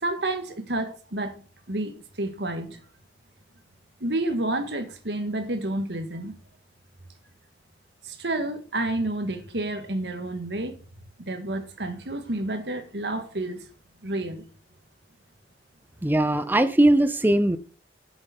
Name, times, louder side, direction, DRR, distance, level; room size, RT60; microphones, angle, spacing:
voice 1, 0.0-1.3 1.7-2.8 4.0-6.3 8.0-10.8 11.2-13.6 14.0-14.4, right 2 dB, 75° right, 1.7 m, -30 dB
voice 2, 16.0-17.6, right 1 dB, 10° right, 0.5 m, -20 dB
10.5 x 7.0 x 5.4 m
head